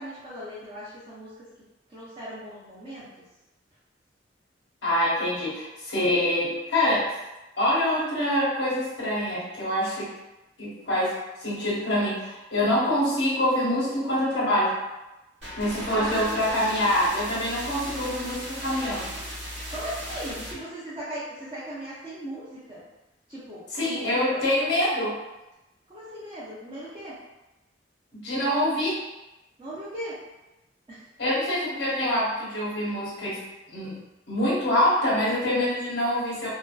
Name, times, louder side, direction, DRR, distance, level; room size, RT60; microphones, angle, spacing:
voice 1, 0.0-1.5 1.9-3.2 15.9-16.4 19.7-22.8 23.3-24.4 25.9-27.2 29.6-30.2 30.9-31.0, right 1 dB, 25° right, -10 dB, 0.5 m, -38 dB
voice 2, 4.8-7.1 7.6-10.1 10.6-11.1 11.4-14.7 15.6-19.1 23.7-25.2 28.1-29.0 31.2-33.4 33.7-34.0 34.3-36.5, left 1 dB, 80° left, -7 dB, 1.0 m, -25 dB
sound 1, 15.4-20.5, equal, 70° right, 1.0 m, -37 dB
2.5 x 2.3 x 2.2 m, 1.0 s
head